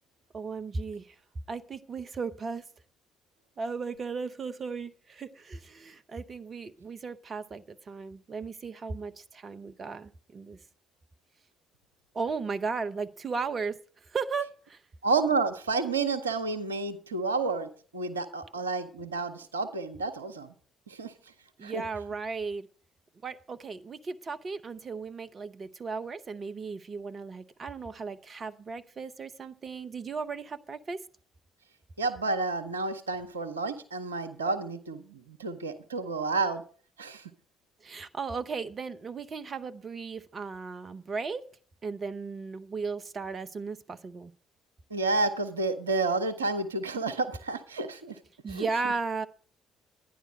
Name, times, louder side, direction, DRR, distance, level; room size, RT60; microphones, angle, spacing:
voice 1, 0.3-1.1 1.5-2.7 3.6-10.6 12.1-14.8 21.6-22.7 23.2-31.0 37.8-41.4 41.8-44.3 48.4-49.3, right 4 dB, 35° right, 0.6 m, -36 dB
voice 2, 15.0-20.5 20.9-21.1 21.6-21.8 32.0-36.6 37.0-37.3 44.9-48.2 48.5-48.7, right 3 dB, 80° right, 0.7 m, -30 dB
11.0 x 10.0 x 5.2 m
figure-of-eight pair, 45°, 0 cm